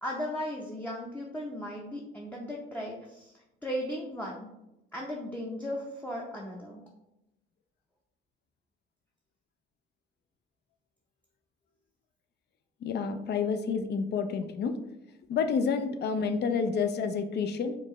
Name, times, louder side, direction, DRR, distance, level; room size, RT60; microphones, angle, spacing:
voice 1, 0.0-3.3 3.6-4.5 4.9-6.8, equal, 10° left, -2 dB, 0.6 m, -36 dB
voice 2, 12.8-14.7 15.3-17.8, left 5 dB, 55° left, 8 dB, 0.5 m, -29 dB
4.5 x 2.3 x 3.0 m, 0.90 s
cardioid pair, 90°, 20 cm